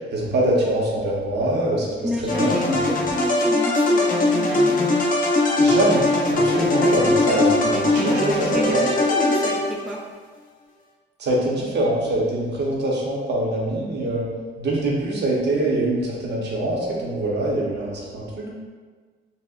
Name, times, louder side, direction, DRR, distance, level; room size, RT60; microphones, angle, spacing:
voice 1, 0.1-1.9 2.2-2.8 5.6-6.0 6.3-8.8 11.2-14.2 14.6-18.5, right 1 dB, 60° right, -3 dB, 0.8 m, -24 dB
voice 2, 2.0-4.8 6.8-10.0, left 1 dB, ahead, -2 dB, 0.3 m, -30 dB
sound 1, 2.3-10.0, left 2 dB, 40° left, 0.6 m, -20 dB
4.0 x 2.1 x 2.4 m, 1.5 s
cardioid pair, 90°, 20 cm